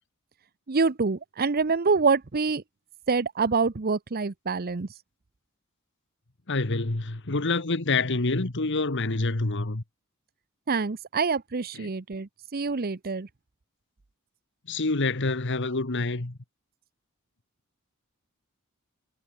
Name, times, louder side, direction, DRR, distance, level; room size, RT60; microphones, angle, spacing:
voice 1, 0.7-2.6 3.1-4.9 10.7-13.3, right 4 dB, 45° right, 0.7 m, -26 dB
voice 2, 6.5-9.8 11.8-11.9 14.7-16.4, left 3 dB, 55° left, 1.5 m, -27 dB
head